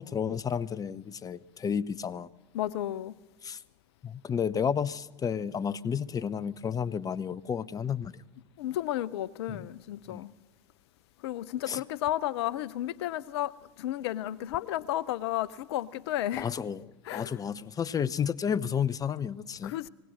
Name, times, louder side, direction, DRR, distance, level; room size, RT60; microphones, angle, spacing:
voice 1, 0.0-2.3 3.4-3.6 4.0-8.1 9.5-9.6 10.1-10.2 11.7-11.8 16.4-19.8, left 7 dB, 25° left, 0.7 m, -31 dB
voice 2, 2.5-3.1 8.6-10.3 11.2-13.5 13.8-16.5 17.1-17.4 19.6-19.9, left 13 dB, 65° left, 0.7 m, -32 dB
25.0 x 18.5 x 6.5 m
hypercardioid pair, 80°, 14 cm